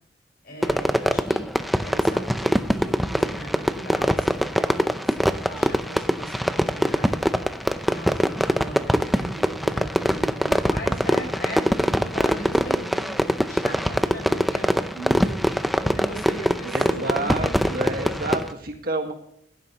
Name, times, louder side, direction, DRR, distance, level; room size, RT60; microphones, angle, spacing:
voice 1, 0.4-1.5 1.7-7.2 7.8-15.4 15.8-17.9, right 1 dB, 55° left, 2 dB, 5.6 m, -38 dB
Fireworks, 0.6-18.5, equal, ahead, 0.6 m, -23 dB
voice 2, 16.7-19.1, right 2 dB, 55° right, 4 dB, 1.7 m, -29 dB
16.0 x 11.5 x 3.0 m, 0.71 s
head